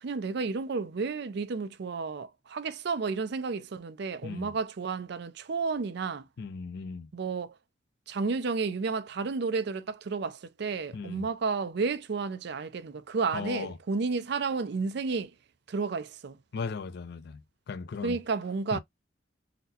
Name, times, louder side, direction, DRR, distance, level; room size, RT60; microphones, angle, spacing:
voice 1, 0.0-6.3 7.1-7.5 8.1-15.3 15.7-16.4 18.0-18.8, right 4 dB, 60° right, 0.5 m, -32 dB
voice 2, 4.2-4.6 6.4-7.1 10.9-11.3 13.3-13.8 16.5-17.4 17.7-18.2 18.7-18.8, left 5 dB, 60° left, 0.4 m, -37 dB
4.0 x 2.0 x 2.7 m
head